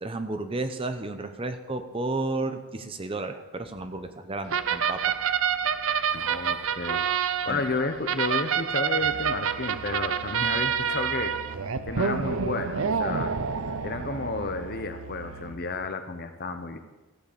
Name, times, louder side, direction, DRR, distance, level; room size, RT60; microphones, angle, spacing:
voice 1, 0.0-5.2 7.5-7.6, right 2 dB, 25° right, 9 dB, 0.8 m, -32 dB
sound 1, 4.5-14.8, right 7 dB, 60° right, 0.6 m, -28 dB
voice 2, 6.1-11.6 11.9-13.3 13.8-16.8, left 3 dB, 45° left, 8 dB, 1.0 m, -32 dB
Musical instrument, 9.0-15.8, right 3 dB, 85° right, 1.2 m, -43 dB
14.5 x 8.0 x 6.9 m, 1.1 s
head